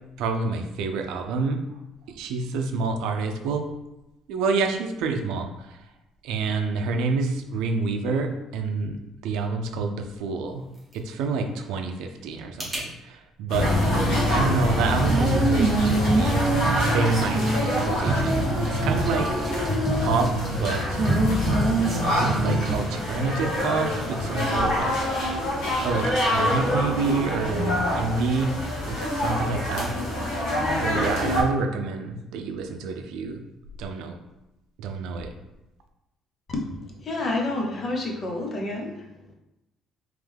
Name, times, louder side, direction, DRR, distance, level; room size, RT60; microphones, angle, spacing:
voice 1, 0.2-1.6 2.1-3.7 4.3-5.8 6.2-9.0 9.2-10.6 10.9-13.7 14.3-16.5 16.9-19.4 20.0-21.0 21.5-21.8 22.2-25.1 25.8-28.5 28.8-30.2 30.8-33.4 33.8-34.2 34.8-35.3, right 4 dB, 80° right, 5 dB, 0.5 m, -28 dB
sound 1, 10.3-12.9, right 1 dB, 5° right, 1.2 m, -40 dB
sound 2, 13.5-31.4, left 1 dB, 80° left, 1.3 m, -26 dB
Female singing, 15.0-22.8, right 2 dB, 25° right, 0.6 m, -25 dB
voice 2, 36.5-39.3, left 2 dB, 35° left, 0 dB, 0.8 m, -30 dB
3.6 x 3.2 x 3.5 m, 0.95 s
cardioid pair, 155°, 0 cm